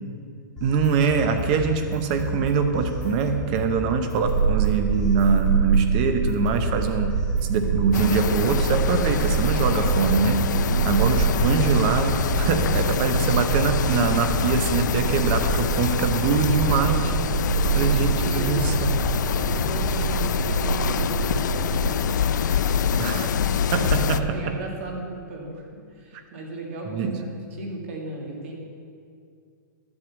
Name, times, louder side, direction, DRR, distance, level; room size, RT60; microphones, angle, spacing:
sound 1, 0.6-20.1, equal, 5° left, 1.9 m, -32 dB
voice 1, 0.6-7.1 7.5-10.4 10.8-17.4 17.7-19.0 23.0-23.3 23.7-24.6 26.1-26.2 26.8-27.2, right 5 dB, 25° right, 7 dB, 0.7 m, -24 dB
sound 2, 4.2-21.9, right 7 dB, 60° right, 0.8 m, -26 dB
sound 3, 7.9-24.2, left 8 dB, 65° left, 0.4 m, -25 dB
voice 2, 10.6-11.1 17.5-18.7 19.4-22.5 22.9-23.7 24.2-28.5, right 2 dB, 40° right, 0 dB, 2.0 m, -36 dB
12.0 x 6.6 x 7.2 m, 2.3 s
hypercardioid pair, 175°, 11 cm